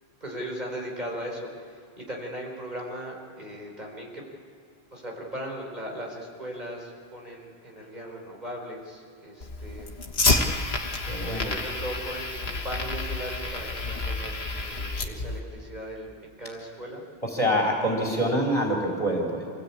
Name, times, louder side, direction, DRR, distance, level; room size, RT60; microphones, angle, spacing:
voice 1, 0.2-4.2 4.9-9.9 11.4-17.0, equal, 45° right, -1 dB, 4.5 m, -38 dB
Fire, 9.4-15.4, left 3 dB, 80° left, 1.8 m, -29 dB
voice 2, 11.1-11.5 17.2-19.5, equal, 30° left, -2 dB, 3.7 m, -26 dB
26.0 x 17.0 x 8.6 m, 2.4 s
omnidirectional pair, 1.0 m